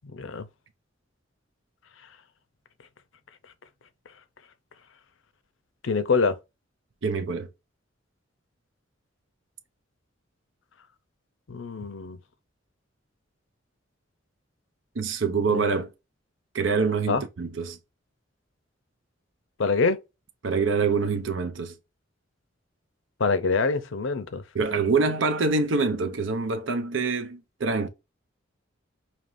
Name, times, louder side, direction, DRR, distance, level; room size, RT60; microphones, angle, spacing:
voice 1, 0.1-0.5 5.8-6.4 11.5-12.2 15.5-15.6 17.1-17.2 19.6-20.0 23.2-24.4, left 4 dB, 80° left, 0.6 m, -25 dB
voice 2, 7.0-7.5 15.0-15.9 16.5-17.8 20.4-21.7 24.5-27.9, right 4 dB, 75° right, 0.7 m, -25 dB
5.1 x 2.9 x 2.5 m
head